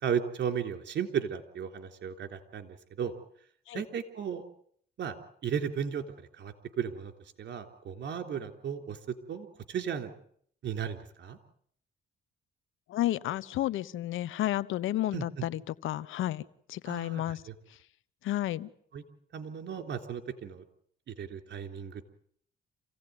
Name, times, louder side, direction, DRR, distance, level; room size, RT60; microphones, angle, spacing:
voice 1, 0.0-3.1 3.7-4.4 5.0-5.2 5.4-6.0 6.4-7.1 7.4-9.0 9.3-10.1 10.6-11.4 15.1-15.3 16.9-17.5 18.9-19.0 19.3-20.6 21.1-22.0, right 8 dB, 65° right, 7 dB, 3.6 m, -35 dB
voice 2, 12.9-16.4 16.7-17.4 18.2-18.7, left 14 dB, 85° left, 17 dB, 1.1 m, -31 dB
28.5 x 17.0 x 9.6 m, 0.65 s
cardioid pair, 90°, 20 cm